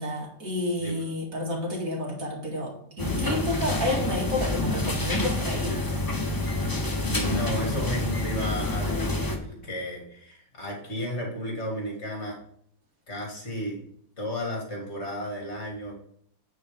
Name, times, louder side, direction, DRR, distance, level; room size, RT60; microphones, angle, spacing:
voice 1, 0.0-2.7 3.0-5.8, left 1 dB, 45° right, -1 dB, 2.6 m, -30 dB
sound 1, 3.0-9.4, left 2 dB, 20° left, 0.6 m, -28 dB
voice 2, 6.7-12.4 13.1-13.8 14.2-15.9, equal, 35° left, -1 dB, 2.4 m, -33 dB
9.0 x 4.6 x 5.1 m, 0.65 s
omnidirectional pair, 2.0 m